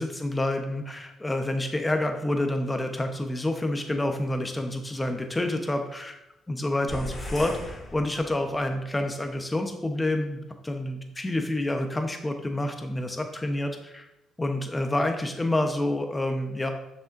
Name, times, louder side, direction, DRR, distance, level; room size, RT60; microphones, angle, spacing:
voice 1, 0.0-6.1 6.5-14.1 14.4-16.7, left 1 dB, 15° left, 5 dB, 0.9 m, -28 dB
sound 1, 6.9-8.7, left 2 dB, 50° left, 2.6 m, -37 dB
7.5 x 6.2 x 2.6 m, 0.90 s
cardioid pair, 90°, 0 cm